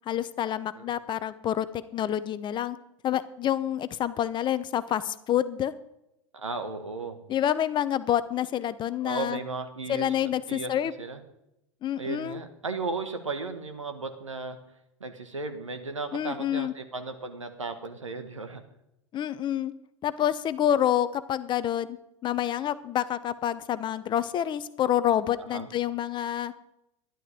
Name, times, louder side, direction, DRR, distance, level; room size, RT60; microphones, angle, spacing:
voice 1, 0.1-2.8 3.0-5.7 7.3-9.4 9.9-10.9 11.8-12.4 16.1-16.7 19.1-19.7 20.0-22.0 22.2-26.5, left 10 dB, 30° left, 15 dB, 0.7 m, -28 dB
voice 2, 6.3-7.2 9.0-10.7 11.0-11.2 12.0-14.6 15.0-18.6 25.5-25.7, right 3 dB, 85° right, 7 dB, 1.5 m, -35 dB
12.5 x 11.0 x 5.0 m, 0.85 s
figure-of-eight pair, 90°, 16 cm